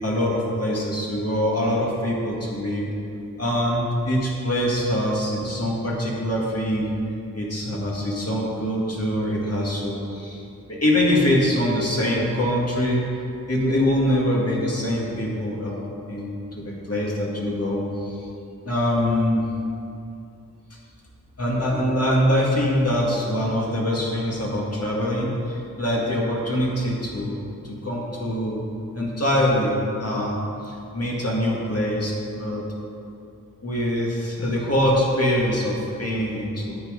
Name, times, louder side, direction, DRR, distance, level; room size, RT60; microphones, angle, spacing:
voice 1, 0.0-2.9 3.4-6.9 7.3-10.4 10.7-13.1 13.5-18.3 18.6-19.4 21.4-28.6 28.9-32.6 33.6-36.8, left 1 dB, 45° left, -4 dB, 2.1 m, -24 dB
9.3 x 7.7 x 5.2 m, 2.6 s
wide cardioid pair, 85°, 34 cm